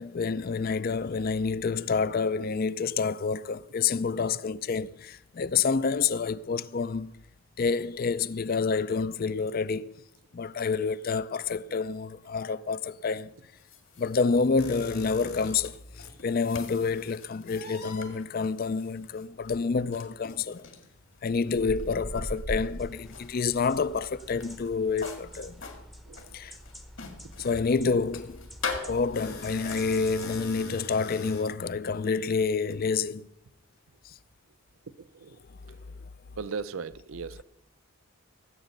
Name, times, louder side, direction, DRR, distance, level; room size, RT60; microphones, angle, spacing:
voice 1, 0.0-7.2 7.6-9.9 10.3-13.3 14.0-20.7 21.2-25.6 26.3-26.6 27.4-28.5 28.9-33.3 34.0-34.1 35.7-35.8, left 5 dB, 40° left, 0.4 m, -28 dB
sound 1, 13.2-30.4, left 4 dB, 60° left, 1.9 m, -44 dB
sound 2, 14.6-16.2 17.5-18.1 20.1-20.3 21.5-23.1 28.6-32.8, left 1 dB, 85° left, 3.5 m, -41 dB
sound 3, 22.8-30.6, equal, ahead, 0.7 m, -48 dB
voice 2, 35.0-35.4 36.4-37.4, right 5 dB, 70° right, 0.6 m, -38 dB
16.0 x 8.1 x 6.6 m
head